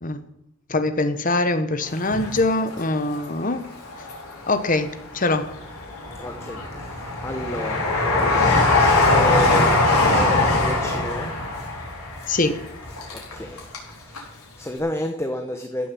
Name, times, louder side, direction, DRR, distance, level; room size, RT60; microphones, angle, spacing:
voice 1, 0.7-3.6 4.5-5.5 12.3-12.6, left 2 dB, 40° left, 1.1 m, -23 dB
Train, 1.9-3.2 3.6-4.6 5.1-13.9 14.1-14.2, left 2 dB, 90° left, 4.5 m, -21 dB
voice 2, 6.2-7.9 8.2-11.3 13.1-13.6 13.9-15.9, left 1 dB, 10° left, 1.0 m, -31 dB
15.0 x 7.5 x 7.6 m
head